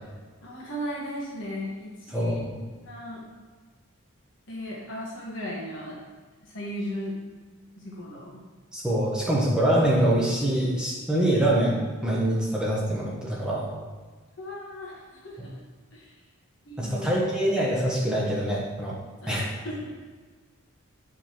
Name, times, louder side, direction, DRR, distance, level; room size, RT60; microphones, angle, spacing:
voice 1, 0.4-3.3 4.5-6.0 6.4-7.2 7.8-8.4 14.4-15.6 15.9-16.2 16.6-17.4 19.2-19.8, equal, 55° left, -5 dB, 1.4 m, -36 dB
voice 2, 2.1-2.5 8.7-11.8 12.0-13.7 16.8-19.0 19.3-19.4, right 1 dB, 5° right, -6 dB, 1.0 m, -24 dB
8.9 x 4.9 x 3.0 m, 1.4 s
head